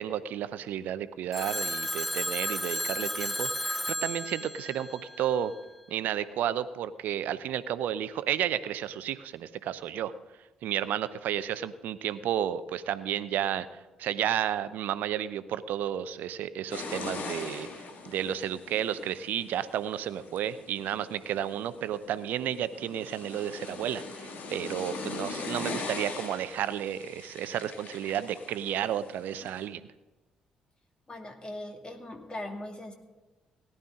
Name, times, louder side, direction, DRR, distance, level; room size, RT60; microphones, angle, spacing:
voice 1, 0.0-5.5 5.9-10.1 10.6-17.7 18.0-29.8, right 10 dB, 65° right, 14 dB, 0.7 m, -32 dB
Telephone, 1.3-5.6, equal, 5° left, 0.5 m, -33 dB
sound 1, 16.7-29.7, left 4 dB, 55° left, 2.0 m, -41 dB
voice 2, 31.1-33.0, left 1 dB, 25° left, 4 dB, 2.3 m, -40 dB
18.0 x 11.0 x 3.7 m, 1.2 s
figure-of-eight pair, 45°, 3 cm